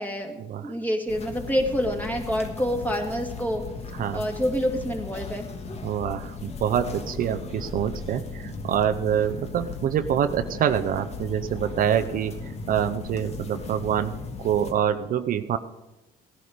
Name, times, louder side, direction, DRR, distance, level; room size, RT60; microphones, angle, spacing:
voice 1, 0.0-3.6 4.1-5.4, equal, 10° left, 2 dB, 2.3 m, -27 dB
sound 1, 1.1-14.7, left 4 dB, 40° left, 1.6 m, -37 dB
voice 2, 5.8-15.6, right 9 dB, 55° right, 8 dB, 0.6 m, -26 dB
16.5 x 11.0 x 5.1 m, 1.0 s
cardioid pair, 110°, 17 cm